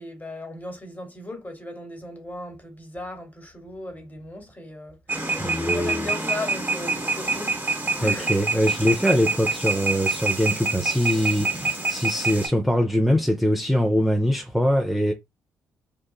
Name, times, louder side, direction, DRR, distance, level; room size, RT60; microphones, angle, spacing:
voice 1, 0.0-5.0 5.2-7.5 8.0-8.4, left 2 dB, 20° left, 1.2 m, -37 dB
sound 1, 5.1-12.5, right 3 dB, 25° right, 1.2 m, -26 dB
voice 2, 5.4-6.1 8.0-15.1, equal, ahead, 0.5 m, -23 dB
3.0 x 2.2 x 2.3 m
hypercardioid pair, 45°, 8 cm